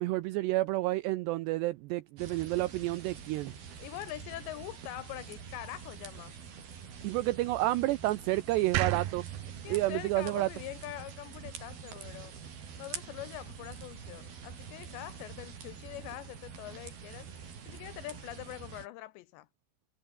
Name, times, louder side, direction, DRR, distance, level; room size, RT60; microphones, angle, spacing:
voice 1, 0.0-3.5 7.0-9.2 9.7-10.5, right 18 dB, 85° right, 2.4 m, -30 dB
sound 1, 2.2-18.9, right 6 dB, 50° right, 5.7 m, -46 dB
voice 2, 3.8-6.3 9.5-12.3 12.8-19.5, left 16 dB, 80° left, 2.7 m, -44 dB
sound 2, 8.7-11.9, right 14 dB, 70° right, 2.5 m, -36 dB
omnidirectional pair, 5.6 m